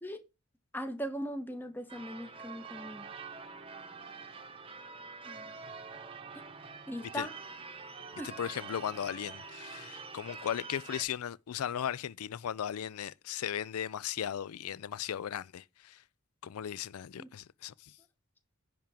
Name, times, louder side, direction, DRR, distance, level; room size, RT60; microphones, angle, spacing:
voice 1, 0.7-3.1 5.3-5.5 6.9-7.3 8.2-8.3 17.2-17.3, equal, 10° left, 1.1 m, -39 dB
Church bell / Car / Alarm, 1.9-11.0, right 5 dB, 25° right, 0.9 m, -46 dB
voice 2, 8.1-16.0 16.4-17.9, left 9 dB, 90° left, 0.4 m, -37 dB
10.5 x 3.6 x 7.2 m
head